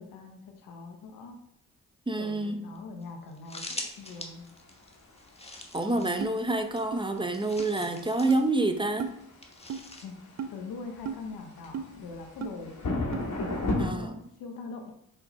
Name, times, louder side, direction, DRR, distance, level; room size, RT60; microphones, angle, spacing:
voice 1, 0.0-1.4 2.1-4.5 5.9-6.2 10.0-12.8 13.4-14.9, left 4 dB, 80° left, 4 dB, 1.3 m, -42 dB
voice 2, 2.1-2.7 5.7-9.1 13.8-14.1, right 2 dB, 15° right, 7 dB, 0.9 m, -28 dB
sound 1, 2.7-2.8 3.0-3.1 3.3-8.5 9.4-10.1, left 2 dB, 20° left, 1.4 m, -43 dB
sound 2, 4.1-13.9, left 2 dB, 65° left, 2.5 m, -36 dB
sound 3, 6.2-6.3 6.9-7.0 7.6-7.7 8.3-8.4 9.0-9.1 9.7-9.8 10.4-10.5 11.0-11.2 11.7-11.9 12.4-12.5 13.1-13.2, right 7 dB, 50° right, 0.8 m, -35 dB
5.7 x 5.2 x 4.3 m, 0.76 s
supercardioid pair, 55°, 34 cm